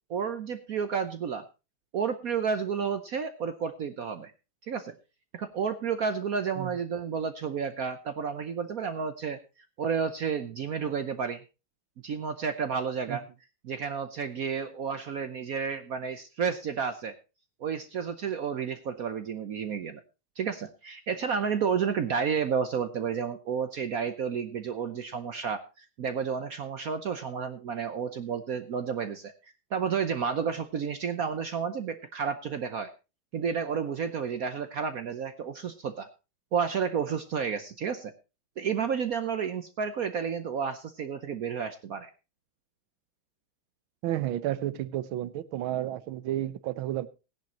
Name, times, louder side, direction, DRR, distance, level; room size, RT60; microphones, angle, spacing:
voice 1, 0.1-1.5 1.9-4.3 4.7-4.9 5.3-9.4 9.8-11.4 12.0-13.2 13.6-17.1 17.6-20.0 20.4-29.3 29.7-32.9 33.3-36.1 36.5-38.1 38.6-42.1, right 6 dB, 60° right, 9 dB, 0.9 m, -31 dB
voice 2, 44.0-47.1, right 13 dB, 75° right, 16 dB, 1.5 m, -31 dB
17.0 x 10.5 x 2.9 m, 0.29 s
omnidirectional pair, 2.3 m